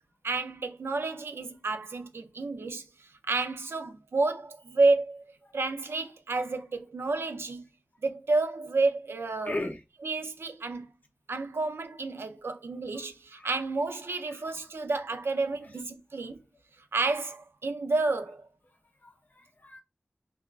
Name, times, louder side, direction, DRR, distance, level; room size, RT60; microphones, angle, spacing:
voice 1, 0.2-2.9 3.3-5.2 5.5-7.7 8.0-9.5 10.0-10.9 11.3-16.4 16.9-18.5, right 3 dB, 90° right, 0.4 m, -30 dB
voice 2, 9.4-9.8 12.9-13.1 13.3-13.5 14.0-14.7 19.0-19.8, left 1 dB, 45° left, 0.6 m, -38 dB
3.2 x 2.2 x 2.3 m
wide cardioid pair, 40°, 4 cm